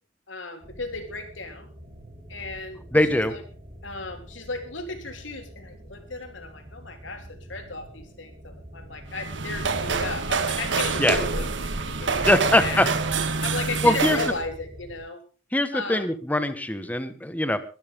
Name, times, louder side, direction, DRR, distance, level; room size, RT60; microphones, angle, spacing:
voice 1, 0.3-1.7 2.3-2.8 3.1-3.4 3.8-12.3 12.6-12.9 13.4-15.2 15.7-16.1, left 3 dB, 85° left, 5 dB, 3.5 m, -35 dB
sound 1, 0.6-15.0, equal, 35° right, 4.8 m, -44 dB
voice 2, 2.9-3.4 11.0-11.2 12.3-12.9 13.8-14.2 15.5-17.6, left 1 dB, 10° left, 11 dB, 1.4 m, -22 dB
sound 2, 9.1-14.4, right 4 dB, 75° right, 1.5 m, -27 dB
22.5 x 12.5 x 3.6 m, 0.34 s
head